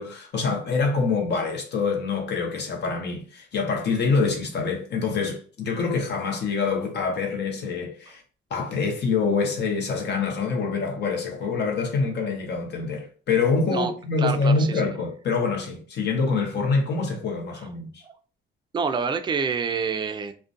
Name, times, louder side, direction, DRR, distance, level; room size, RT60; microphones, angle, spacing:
voice 1, 0.0-8.2 8.5-18.0, left 4 dB, 60° left, 0.8 m, -25 dB
voice 2, 14.2-14.8 18.0-18.1 18.7-20.3, right 5 dB, 25° right, 0.3 m, -27 dB
2.4 x 2.1 x 2.5 m
cardioid pair, 90°, 20 cm